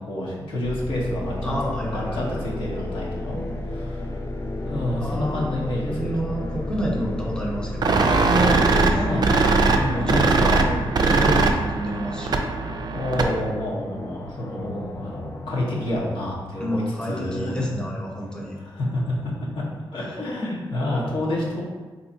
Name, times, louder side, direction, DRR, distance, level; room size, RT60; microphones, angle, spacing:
voice 1, 0.0-1.6 1.9-3.4 3.7-4.1 4.6-6.4 8.8-9.5 9.9-10.5 12.9-17.8 18.6-19.6 19.9-21.6, left 1 dB, 75° left, -6 dB, 1.0 m, -29 dB
sound 1, 0.6-10.9, left 1 dB, 55° left, 1.2 m, -33 dB
sound 2, 1.1-16.0, left 1 dB, 30° left, 0.4 m, -36 dB
voice 2, 1.4-2.3 5.0-9.2 9.7-12.4 16.6-18.6, equal, 10° left, -3 dB, 0.8 m, -29 dB
sound 3, 7.8-13.5, right 3 dB, 50° right, 0.4 m, -21 dB
3.4 x 2.8 x 2.7 m, 1.3 s
cardioid pair, 50°, 9 cm